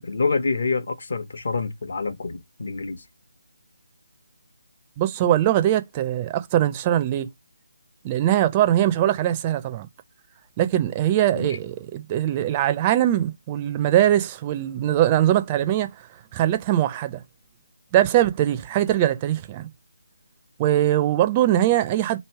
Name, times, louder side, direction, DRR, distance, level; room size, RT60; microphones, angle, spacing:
voice 1, 0.1-3.0 11.3-11.5, left 4 dB, 55° left, 0.9 m, -26 dB
voice 2, 5.0-7.3 8.0-9.9 10.6-15.9 16.3-17.2 17.9-19.7 20.6-22.2, right 12 dB, 20° right, 0.4 m, -21 dB
3.0 x 2.8 x 4.5 m
figure-of-eight pair, 150°, 0 cm